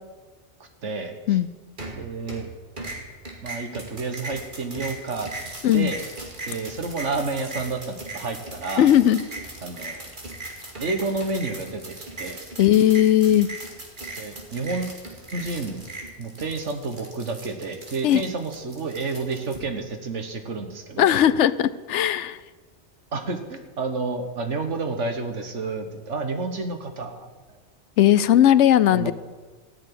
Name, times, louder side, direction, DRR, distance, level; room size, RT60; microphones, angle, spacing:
voice 1, 0.8-1.2 2.0-2.5 3.4-5.3 5.7-6.0 6.5-8.9 9.6-10.1 10.8-12.4 14.2-15.0 15.3-15.8 16.2-21.1 23.1-27.3 28.4-28.5 28.9-29.1, right 3 dB, 85° right, 6 dB, 1.8 m, -30 dB
sound 1, 1.8-2.5 2.8-19.6, right 2 dB, 45° right, 2.5 m, -38 dB
voice 2, 8.8-9.2 12.6-13.5 18.0-18.2 21.0-22.4 28.0-29.1, left 11 dB, 80° left, 16 dB, 0.9 m, -18 dB
14.5 x 7.1 x 10.0 m, 1.3 s
omnidirectional pair, 1.2 m